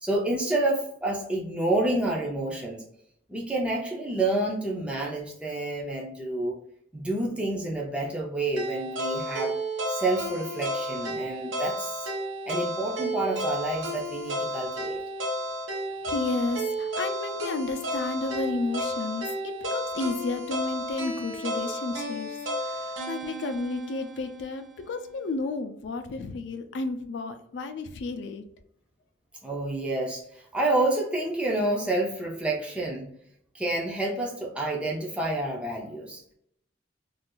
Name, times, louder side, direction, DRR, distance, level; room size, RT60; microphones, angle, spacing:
voice 1, 0.0-2.8 3.3-6.6 6.9-9.6 9.9-12.1 12.5-15.0 29.4-33.1 33.5-36.2, right 2 dB, 5° right, -2 dB, 0.4 m, -29 dB
sound 1, 8.6-24.7, equal, 80° right, 0.7 m, -32 dB
voice 2, 16.0-22.3 22.6-28.4, left 3 dB, 65° left, 8 dB, 0.4 m, -32 dB
2.5 x 2.3 x 3.6 m, 0.70 s
head